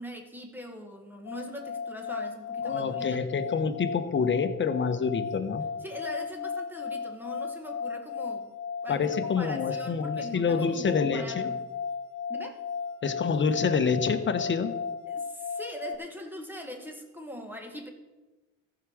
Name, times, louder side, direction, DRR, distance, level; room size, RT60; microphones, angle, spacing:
voice 1, 0.0-3.2 5.8-8.5 8.8-11.6 12.3-12.6 15.1-17.9, equal, 5° right, 2 dB, 1.7 m, -41 dB
sound 1, 1.3-16.0, left 6 dB, 65° left, 0.5 m, -35 dB
voice 2, 2.6-5.7 8.9-11.5 13.0-14.7, left 5 dB, 40° left, 9 dB, 1.1 m, -27 dB
14.5 x 4.9 x 6.4 m, 1.1 s
cardioid pair, 90°, 30 cm